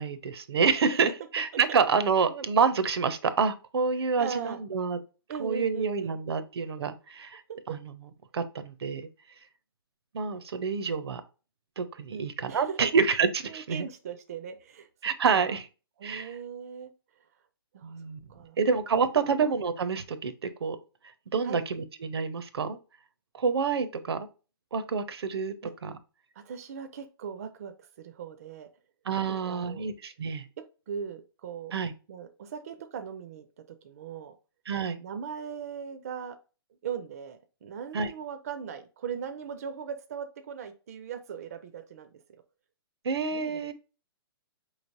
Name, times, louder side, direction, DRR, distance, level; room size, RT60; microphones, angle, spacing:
voice 1, 0.0-5.0 5.4-7.4 7.7-7.8 8.3-9.1 10.1-11.2 11.8-13.8 15.0-15.7 16.0-16.3 17.8-18.2 18.6-20.8 21.3-22.8 23.4-24.2 24.7-25.5 25.8-25.9 29.1-30.5 31.7-31.9 34.7-35.0 37.9-38.1 43.0-43.7, right 5 dB, 85° right, 0.7 m, -27 dB
voice 2, 4.0-4.6 5.3-6.2 6.6-6.7 7.5-7.6 12.1-12.8 13.5-14.9 15.3-15.6 16.0-17.2 17.7-18.0 18.3-18.6 19.0-19.4 21.4-21.6 25.6-25.7 26.4-28.7 29.3-29.9 30.9-31.8 32.1-34.4 35.0-36.4 36.8-42.2 43.3-43.6, right 7 dB, 40° right, 0.4 m, -39 dB
5.0 x 3.2 x 2.6 m
hypercardioid pair, 170°, 13 cm